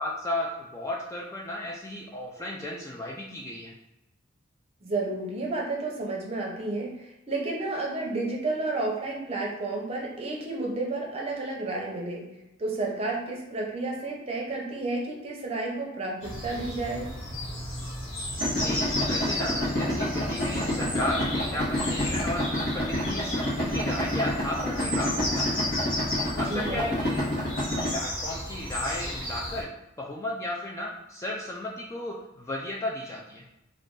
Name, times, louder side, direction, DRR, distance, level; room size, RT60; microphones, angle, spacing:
voice 1, 0.0-3.7 18.6-22.4 22.7-27.2 27.9-29.7 30.0-33.4, left 1 dB, 15° left, -2 dB, 0.3 m, -34 dB
voice 2, 4.8-12.3 12.6-17.1 26.4-26.9, right 2 dB, 30° right, -2 dB, 0.7 m, -31 dB
sound 1, 16.2-29.6, left 1 dB, 75° left, 1.4 m, -34 dB
Idling, 18.4-27.9, left 1 dB, 50° left, 1.0 m, -29 dB
sound 2, 19.4-24.9, equal, 35° left, 1.2 m, -50 dB
2.5 x 2.3 x 3.7 m, 0.92 s
head